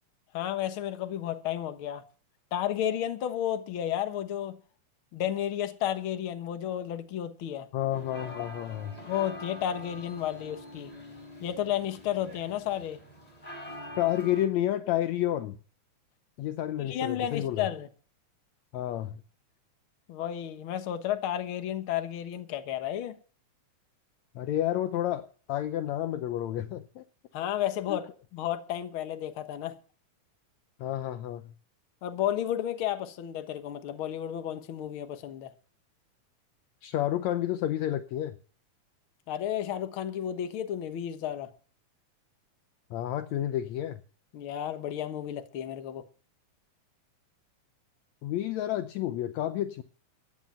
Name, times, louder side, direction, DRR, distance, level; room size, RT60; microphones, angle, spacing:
voice 1, 0.3-2.0 2.5-4.6 5.1-7.7 9.1-10.9 11.4-13.0 16.8-17.9 20.1-23.2 27.3-29.7 32.0-35.5 39.3-41.5 44.3-46.0, left 11 dB, 55° left, 1.7 m, -32 dB
voice 2, 7.7-9.0 14.0-15.6 16.4-17.7 18.7-19.2 24.4-27.0 27.9-28.0 30.8-31.5 36.8-38.4 42.9-44.0 48.2-49.8, left 12 dB, 75° left, 1.9 m, -30 dB
sound 1, 7.9-14.5, left 1 dB, 10° left, 3.5 m, -45 dB
15.0 x 10.0 x 5.7 m
omnidirectional pair, 3.5 m